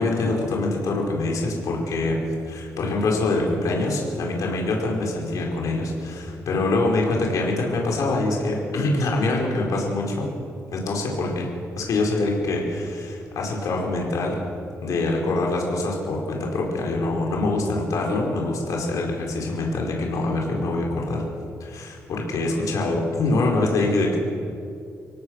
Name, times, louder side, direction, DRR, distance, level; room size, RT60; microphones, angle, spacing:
voice 1, 0.0-2.1 2.4-10.3 10.7-11.5 11.8-14.4 14.8-21.2 21.6-24.2, left 2 dB, 70° left, -1 dB, 4.7 m, -24 dB
25.0 x 17.5 x 6.5 m, 2.5 s
wide cardioid pair, 160°, 6 cm